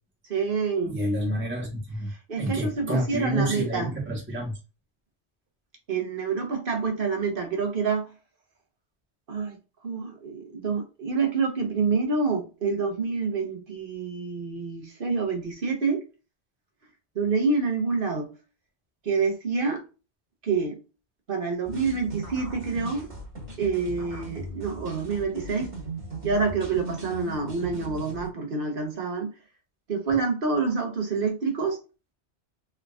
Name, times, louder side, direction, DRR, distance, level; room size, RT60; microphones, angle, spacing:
voice 1, 0.3-1.0 2.1-3.9 5.9-8.1 9.3-9.6 9.8-16.0 17.1-18.3 19.0-19.8 20.4-20.8 21.3-23.1 23.6-25.7 26.2-29.3 29.9-31.8, right 4 dB, 55° right, 1.1 m, -27 dB
voice 2, 0.9-2.1 2.4-4.5, equal, 10° right, 1.1 m, -29 dB
sound 1, 21.6-28.3, right 2 dB, 30° right, 1.4 m, -38 dB
3.7 x 3.5 x 2.3 m
omnidirectional pair, 1.1 m